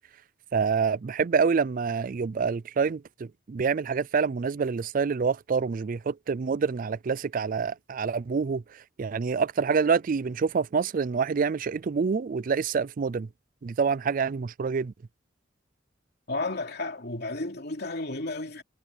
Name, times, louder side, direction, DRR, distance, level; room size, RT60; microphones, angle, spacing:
voice 1, 0.5-13.3 13.6-14.9, right 5 dB, 45° right, 0.4 m, -27 dB
voice 2, 16.3-18.6, left 2 dB, 60° left, 3.0 m, -32 dB
head